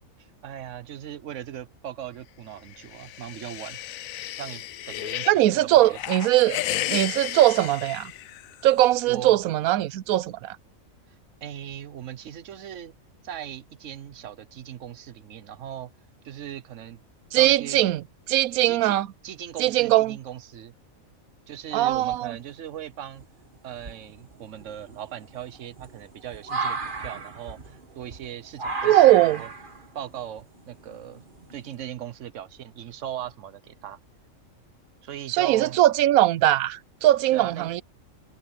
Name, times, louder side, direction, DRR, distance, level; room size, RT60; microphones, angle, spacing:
voice 1, 0.2-3.8 4.4-6.0 9.1-9.4 11.4-12.9 13.2-15.9 16.2-17.0 17.3-17.8 18.6-18.9 19.2-20.7 21.5-23.3 23.6-29.5 29.9-31.2 31.5-34.0 35.0-35.8 37.3-37.7, right 10 dB, 65° right, 1.1 m, -39 dB
sound 1, 2.7-5.4 5.8-8.7, left 13 dB, 75° left, 1.0 m, -33 dB
voice 2, 5.3-6.6 6.9-8.1 8.6-10.6 17.3-18.0 18.3-19.1 19.6-20.2 21.7-22.3 28.8-29.4 35.3-37.8, right 14 dB, 85° right, 1.0 m, -20 dB
sound 2, 21.9-22.5 23.2-23.3 23.8-31.8, right 4 dB, 40° right, 1.6 m, -35 dB
omnidirectional pair, 1.4 m